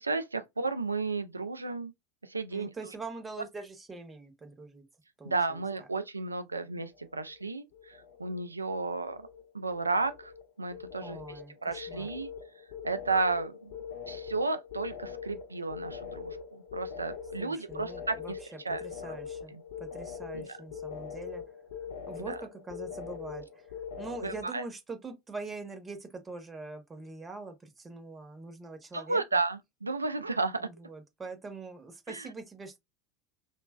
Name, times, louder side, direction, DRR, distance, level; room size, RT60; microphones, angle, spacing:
voice 1, 0.0-1.9 2.2-2.7 5.2-9.3 9.5-10.3 10.6-11.2 11.6-12.3 12.8-13.7 14.1-18.4 18.6-19.1 19.5-19.6 20.3-20.6 22.2-22.4 24.2-24.6 28.9-30.7 32.1-32.3, right 3 dB, 85° right, 0.3 m, -33 dB
voice 2, 2.5-4.8 5.2-5.9 11.0-12.1 17.4-19.5 19.8-21.4 22.1-23.6 24.0-29.4 30.6-32.8, right 3 dB, 20° right, 0.8 m, -44 dB
sound 1, 6.8-7.4 7.7-8.5 8.7-24.5, left 7 dB, 65° left, 0.8 m, -43 dB
2.9 x 2.2 x 2.2 m
figure-of-eight pair, 75°, 0 cm